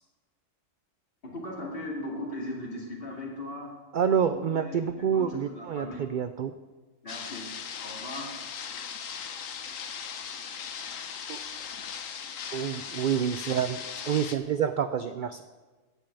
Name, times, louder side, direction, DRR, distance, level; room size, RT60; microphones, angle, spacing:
voice 1, 1.2-3.7 4.1-6.1 7.0-7.5 7.8-8.3, left 1 dB, 45° left, -2 dB, 2.8 m, -38 dB
voice 2, 3.9-6.5 11.3-11.4 12.5-15.4, right 8 dB, 70° right, 10 dB, 0.4 m, -28 dB
sound 1, 7.1-14.4, left 7 dB, 80° left, 1.2 m, -38 dB
8.7 x 7.4 x 8.9 m, 1.3 s
omnidirectional pair, 1.3 m